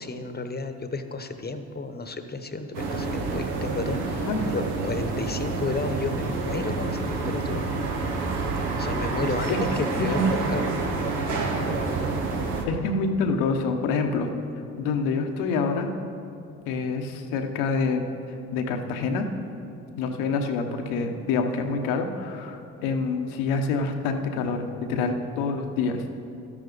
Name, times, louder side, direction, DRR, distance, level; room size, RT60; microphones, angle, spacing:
voice 1, 0.0-7.6 8.8-10.2 10.5-10.7, left 3 dB, 25° left, 8 dB, 1.0 m, -32 dB
sound 1, 2.7-12.6, right 3 dB, 85° right, 1.3 m, -28 dB
voice 2, 9.0-9.6 10.0-10.3 12.7-14.3 14.8-15.9 16.7-18.0 18.5-19.2 20.0-26.1, left 4 dB, 85° left, 5 dB, 1.0 m, -27 dB
12.5 x 11.0 x 4.0 m, 2.8 s
supercardioid pair, 60°, 37 cm